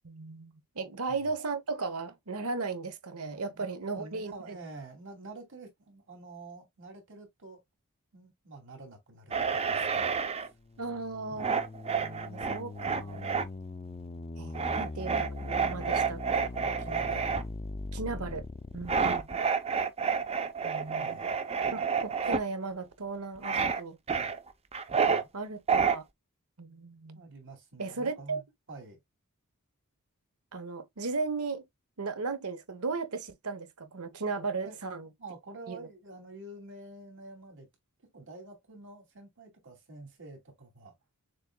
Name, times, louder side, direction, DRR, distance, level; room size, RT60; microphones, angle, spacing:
voice 1, 0.0-4.6 10.8-11.6 11.9-13.3 14.4-16.5 17.9-18.4 18.7-19.3 20.6-21.2 21.7-24.0 25.3-26.0 26.6-27.3 27.8-28.4 30.5-31.6 32.0-35.1 35.7-35.9, right 4 dB, 80° right, 1.0 m, -36 dB
voice 2, 3.5-7.6 8.1-10.5 14.8-15.0 16.6-17.3 18.9-19.1 21.0-21.3 21.6-21.9 24.9-25.3 27.1-28.4 28.7-29.0 34.6-34.8 35.2-37.7 38.1-40.9, right 2 dB, 60° right, 2.6 m, -48 dB
sound 1, 9.3-10.5 11.4-13.5 14.5-17.4 18.9-22.4 23.4-23.8 24.1-25.2 25.7-26.0, right 6 dB, 30° right, 0.5 m, -29 dB
sound 2, 10.6-19.3, left 2 dB, 25° left, 0.4 m, -41 dB
6.5 x 3.6 x 2.2 m
head